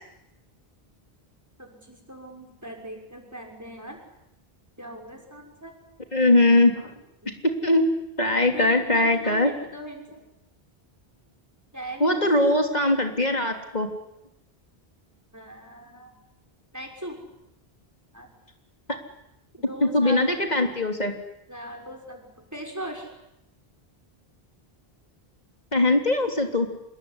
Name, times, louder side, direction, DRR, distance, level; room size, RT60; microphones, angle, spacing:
voice 1, 1.6-4.0 4.8-5.8 7.2-7.3 8.5-10.1 11.7-12.3 15.3-16.1 16.7-17.3 18.1-18.3 19.6-20.4 21.5-23.1, right 1 dB, 15° right, 3 dB, 6.0 m, -39 dB
voice 2, 6.1-6.9 7.4-7.9 8.2-9.5 12.0-13.9 19.8-21.1 25.7-26.7, left 2 dB, 45° left, 4 dB, 3.6 m, -21 dB
27.0 x 21.5 x 10.0 m, 0.85 s
omnidirectional pair, 1.0 m